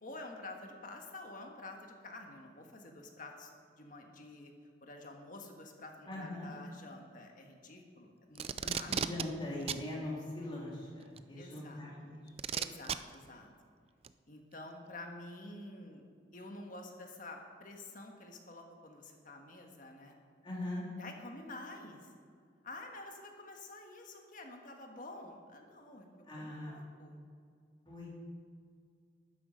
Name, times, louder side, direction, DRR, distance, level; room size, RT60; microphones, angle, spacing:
voice 1, 0.0-3.5 3.8-4.5 4.8-9.0 11.4-11.8 12.5-13.5 14.3-16.0 16.3-20.2 21.0-22.1 22.6-26.1 26.4-27.2, left 2 dB, 45° left, 3 dB, 1.5 m, -49 dB
voice 2, 6.1-6.5 8.9-12.2 20.4-20.9 26.3-26.7 27.9-28.1, left 1 dB, 25° left, -5 dB, 3.3 m, -41 dB
Packing tape duct tape, 8.3-9.2 9.7-9.8 11.2-11.3 12.4-13.0 14.0-14.1, right 8 dB, 35° right, 0.3 m, -34 dB
12.5 x 10.0 x 5.2 m, 2.2 s
head